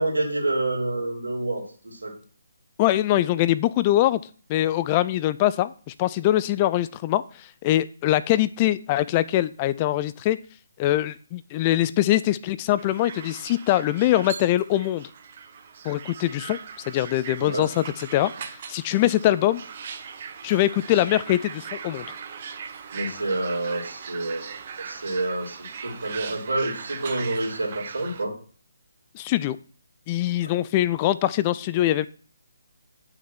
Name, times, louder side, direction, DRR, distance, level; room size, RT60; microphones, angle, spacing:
voice 1, 0.0-2.1 17.4-17.6 22.9-24.6 24.8-25.6 25.8-28.3, right 2 dB, 70° right, 1 dB, 2.9 m, -28 dB
voice 2, 2.8-4.2 4.5-10.4 10.8-15.1 15.8-16.6 16.9-18.3 18.7-19.6 20.4-22.1 29.1-29.6 30.1-32.1, left 14 dB, 25° left, 15 dB, 0.3 m, -23 dB
sound 1, 12.8-28.2, right 6 dB, 40° right, 0.9 m, -39 dB
8.6 x 6.2 x 4.4 m, 0.42 s
figure-of-eight pair, 145°, 0 cm